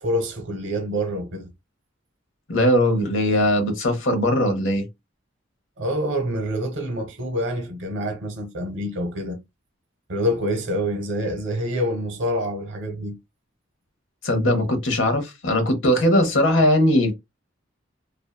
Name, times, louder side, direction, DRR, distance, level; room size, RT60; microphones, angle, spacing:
voice 1, 0.0-1.5 5.8-9.4 10.1-13.2, equal, 75° right, 0.9 m, -26 dB
voice 2, 2.5-4.8 14.2-17.1, left 1 dB, 80° left, 0.8 m, -20 dB
2.6 x 2.2 x 2.2 m
head